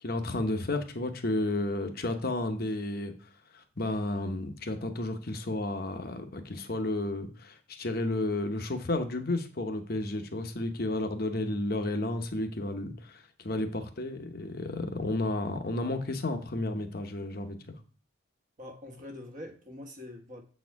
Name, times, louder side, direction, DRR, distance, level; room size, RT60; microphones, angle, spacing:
voice 1, 0.0-3.1 3.5-17.7, left 2 dB, 45° left, 7 dB, 0.9 m, -32 dB
voice 2, 18.6-20.4, left 1 dB, 40° right, 3 dB, 1.3 m, -44 dB
7.5 x 4.3 x 4.7 m, 0.40 s
head